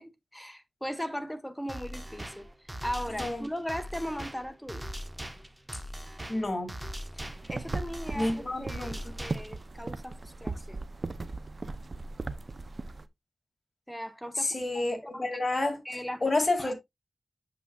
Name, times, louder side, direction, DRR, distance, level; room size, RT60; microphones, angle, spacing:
voice 1, 0.0-2.5 2.8-4.8 7.5-10.8 13.9-14.5 15.1-15.3 15.8-16.2 16.6-16.7, equal, 5° left, 1.2 m, -38 dB
sound 1, 1.7-9.7, right 1 dB, 15° right, 1.1 m, -41 dB
voice 2, 6.3-6.7 8.1-9.1 14.4-16.7, left 2 dB, 40° left, 2.4 m, -30 dB
sound 2, 7.2-13.0, right 3 dB, 50° right, 0.6 m, -38 dB
8.5 x 6.8 x 2.4 m
cardioid pair, 60°, 0 cm